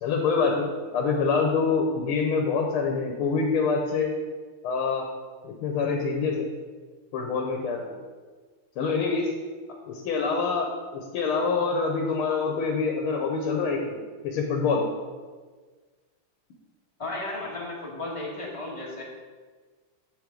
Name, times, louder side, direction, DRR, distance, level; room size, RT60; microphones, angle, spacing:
voice 1, 0.0-4.1 4.6-5.1 5.4-6.5 7.1-8.0 8.8-9.3 9.9-14.8, left 4 dB, 90° left, 2 dB, 1.7 m, -26 dB
voice 2, 17.0-19.0, left 2 dB, 20° left, -3 dB, 1.2 m, -34 dB
8.0 x 6.0 x 3.8 m, 1.4 s
omnidirectional pair, 2.3 m